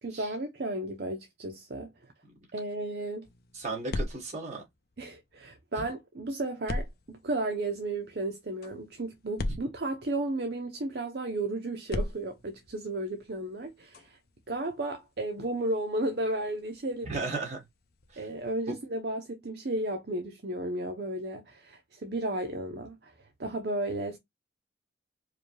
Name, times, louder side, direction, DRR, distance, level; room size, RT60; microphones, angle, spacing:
voice 1, 0.0-1.9 2.5-3.3 5.0-14.2 14.5-17.3 18.2-23.1 23.4-24.2, right 2 dB, 55° right, 0.6 m, -33 dB
sound 1, 3.2-5.6 6.7-10.6 11.8-18.5, left 1 dB, 55° left, 0.6 m, -41 dB
voice 2, 3.5-4.6 17.0-17.6 18.1-18.3, right 3 dB, 35° right, 2.0 m, -35 dB
4.9 x 2.3 x 3.1 m
head